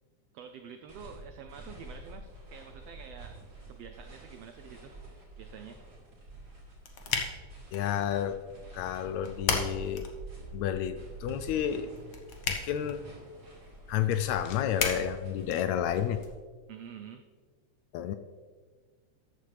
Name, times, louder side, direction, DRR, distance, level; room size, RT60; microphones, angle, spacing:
voice 1, 0.3-3.4 3.7-5.0 5.4-5.8 16.7-17.3, right 7 dB, 85° right, 6 dB, 1.4 m, -47 dB
sound 1, 0.9-16.3, right 2 dB, 30° right, 3.0 m, -48 dB
sound 2, 6.3-16.3, left 5 dB, 60° left, 1.5 m, -38 dB
voice 2, 7.7-8.4 8.7-10.1 10.5-11.9 12.5-13.0 13.9-16.2 17.9-18.1, left 10 dB, 80° left, 10 dB, 1.7 m, -30 dB
13.5 x 8.9 x 3.3 m, 1.5 s
omnidirectional pair, 3.5 m